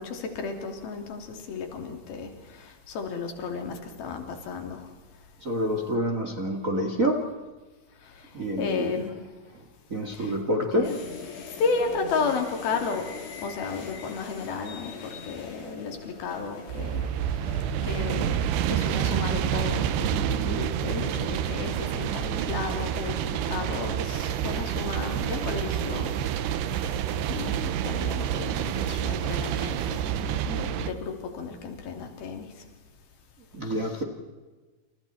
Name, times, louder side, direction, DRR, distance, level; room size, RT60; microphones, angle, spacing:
voice 1, 0.0-4.9 8.0-8.3 8.6-9.1 10.1-10.4 10.7-11.0 11.6-13.1 13.4-17.0 17.8-18.4 18.7-23.1 23.5-26.3 27.3-32.5, left 4 dB, 65° left, 4 dB, 4.9 m, -33 dB
voice 2, 5.4-7.3 8.3-9.0 9.5-9.6 9.9-11.0 33.5-34.0, equal, 25° right, 3 dB, 1.9 m, -27 dB
sound 1, 10.8-30.0, left 5 dB, 90° left, 5.5 m, -45 dB
sound 2, 16.7-30.9, right 10 dB, 85° right, 3.0 m, -28 dB
29.0 x 29.0 x 4.4 m, 1.3 s
omnidirectional pair, 4.6 m